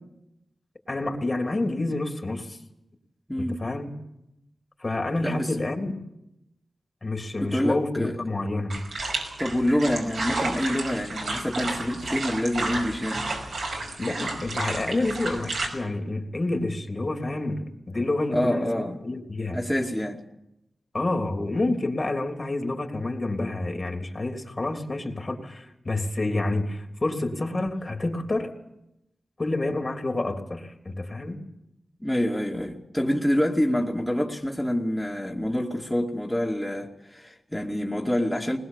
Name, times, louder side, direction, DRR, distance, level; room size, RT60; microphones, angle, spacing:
voice 1, 0.9-2.6 3.4-3.9 4.8-6.0 7.0-8.8 14.0-19.6 20.9-28.5 29.4-31.4, left 2 dB, 40° left, 3.1 m, -28 dB
voice 2, 3.3-3.6 5.2-5.5 7.4-8.2 9.4-13.3 18.3-19.0 19.5-20.2 32.0-38.6, equal, 10° left, 2.3 m, -26 dB
sound 1, 8.7-15.7, right 2 dB, 80° right, 5.6 m, -31 dB
21.0 x 20.0 x 7.2 m
cardioid pair, 45°, 0 cm